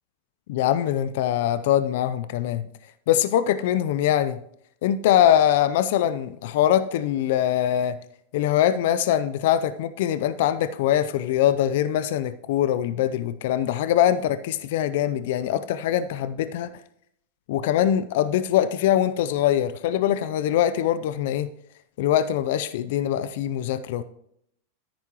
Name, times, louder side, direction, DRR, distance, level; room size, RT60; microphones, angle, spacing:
voice 1, 0.5-2.7 3.1-4.4 4.8-8.0 8.3-16.7 17.5-21.5 22.0-24.0, left 11 dB, 65° left, 0.5 m, -23 dB
10.0 x 9.4 x 3.0 m
hypercardioid pair, 110°, 0 cm